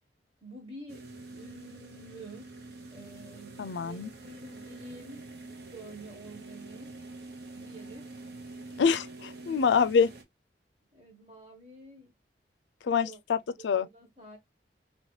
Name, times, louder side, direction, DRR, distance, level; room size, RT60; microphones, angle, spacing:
voice 1, 0.4-2.5 2.9-5.2 5.6-6.9 7.5-8.1 10.9-12.1 13.0-14.4, right 2 dB, 35° right, 1.3 m, -49 dB
sound 1, 0.9-10.2, right 2 dB, 65° right, 0.9 m, -46 dB
voice 2, 3.6-4.1 8.8-10.1 12.8-13.4 13.6-13.9, left 6 dB, 85° left, 0.4 m, -25 dB
2.9 x 2.9 x 3.2 m
head